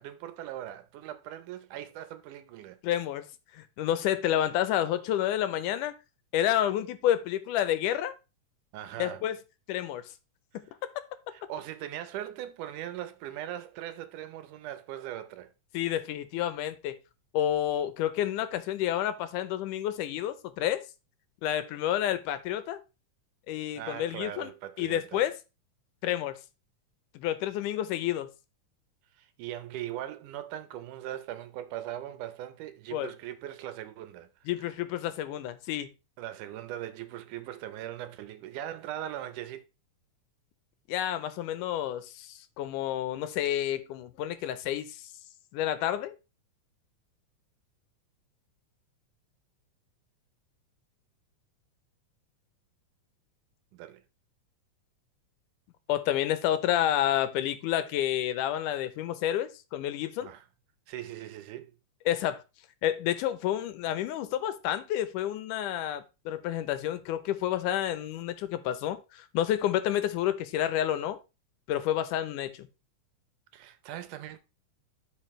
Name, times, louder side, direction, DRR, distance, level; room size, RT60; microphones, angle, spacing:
voice 1, 0.0-2.8 8.7-9.2 11.3-15.5 23.8-25.3 29.1-34.7 36.2-39.6 53.7-54.0 60.2-60.4 60.9-61.8 73.5-74.4, right 12 dB, 80° right, 2.3 m, -40 dB
voice 2, 2.8-3.3 3.5-6.0 6.3-8.1 9.0-9.4 9.7-10.0 10.5-10.6 15.7-17.0 17.3-20.8 21.4-22.8 23.5-24.5 24.8-25.4 26.0-26.4 27.2-28.3 32.9-33.1 34.5-35.9 40.9-45.1 45.5-46.1 55.9-60.3 62.1-62.4 62.8-71.2 71.7-72.7, left 11 dB, 80° left, 2.2 m, -29 dB
12.5 x 5.3 x 3.1 m
omnidirectional pair, 3.7 m